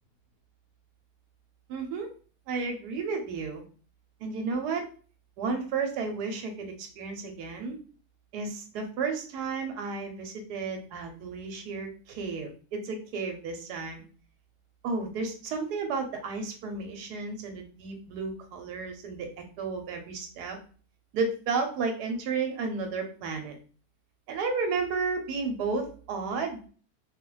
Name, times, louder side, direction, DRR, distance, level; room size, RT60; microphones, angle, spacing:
voice 1, 1.7-2.1 2.5-3.6 4.2-4.9 5.4-7.8 8.3-14.0 14.8-19.3 19.6-20.6 21.1-23.5 24.3-26.7, right 4 dB, 90° right, 4 dB, 1.2 m, -32 dB
2.6 x 2.4 x 3.0 m, 0.40 s
omnidirectional pair, 1.7 m